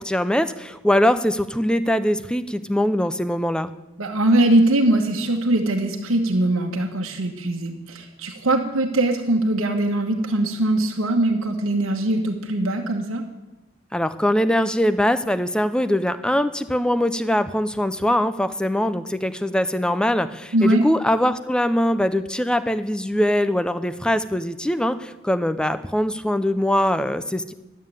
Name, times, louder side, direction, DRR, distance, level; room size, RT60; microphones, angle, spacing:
voice 1, 0.0-3.7 13.9-27.5, left 1 dB, 5° left, 12 dB, 0.5 m, -22 dB
voice 2, 4.0-13.2 20.5-20.8, right 1 dB, 85° right, 2 dB, 1.2 m, -21 dB
11.5 x 7.5 x 8.9 m, 1.0 s
head